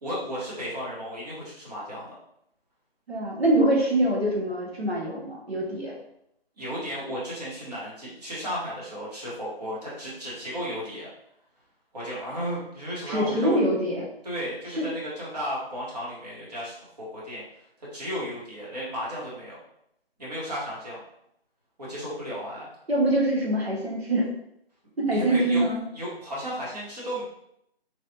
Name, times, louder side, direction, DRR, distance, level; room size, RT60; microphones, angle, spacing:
voice 1, 0.0-2.1 6.6-11.1 11.9-13.6 14.2-17.4 17.8-19.6 20.2-21.0 21.8-22.7 25.1-25.6 25.9-27.2, equal, 40° right, -6 dB, 1.3 m, -34 dB
voice 2, 3.1-5.9 13.1-14.0 14.8-14.9 22.9-24.3 25.0-25.8, right 1 dB, 80° right, -3 dB, 1.3 m, -24 dB
3.2 x 2.4 x 2.7 m, 0.77 s
figure-of-eight pair, 165°, 31 cm